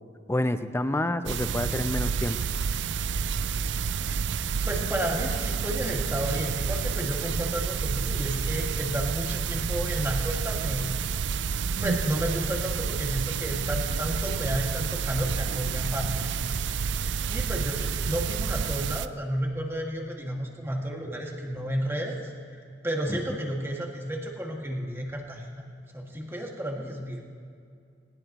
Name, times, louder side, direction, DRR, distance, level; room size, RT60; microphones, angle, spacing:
voice 1, 0.3-2.4 23.1-23.2, left 1 dB, 15° left, 10 dB, 0.6 m, -28 dB
sound 1, 1.3-19.1, right 6 dB, 85° right, 0.4 m, -29 dB
voice 2, 4.7-10.9 11.8-16.3 17.3-25.5 25.9-27.2, equal, 15° right, -1 dB, 2.0 m, -32 dB
19.5 x 19.5 x 3.0 m, 2.3 s
head